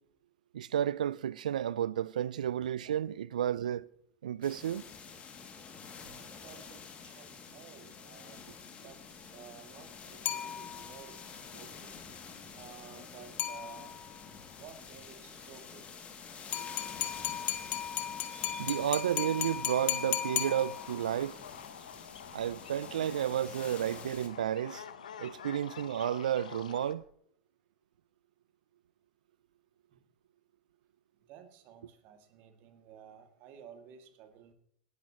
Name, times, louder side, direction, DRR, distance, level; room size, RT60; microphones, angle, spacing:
voice 1, 0.5-3.8 4.2-4.8 18.3-21.4 22.3-24.8 25.2-27.0, right 10 dB, 85° right, 0.4 m, -32 dB
sound 1, 4.4-24.3, left 6 dB, 30° left, 2.4 m, -48 dB
voice 2, 6.4-8.4 8.8-11.2 11.5-12.0 12.5-14.0 14.6-15.9 31.3-34.5, right 8 dB, 55° right, 2.3 m, -53 dB
sound 2, 10.3-11.1 13.4-14.1 16.5-21.1, left 11 dB, 50° left, 1.3 m, -35 dB
sound 3, 19.8-27.0, left 8 dB, 90° left, 0.9 m, -48 dB
18.5 x 10.5 x 3.0 m
hypercardioid pair, 95°, 4 cm